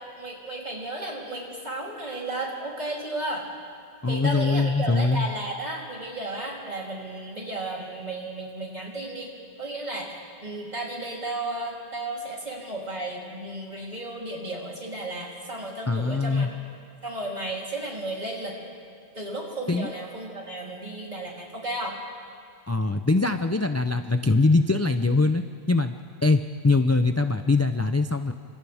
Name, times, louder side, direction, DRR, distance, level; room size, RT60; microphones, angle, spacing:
voice 1, 0.2-3.4 4.1-9.3 9.6-10.1 10.4-16.5 17.0-18.6 19.1-22.0, right 1 dB, 40° right, -3 dB, 3.6 m, -33 dB
voice 2, 4.0-5.3 15.9-16.5 19.7-19.9 22.7-25.4 25.7-28.3, left 3 dB, 20° left, 7 dB, 0.4 m, -22 dB
30.0 x 26.5 x 3.5 m, 2.3 s
omnidirectional pair, 1.1 m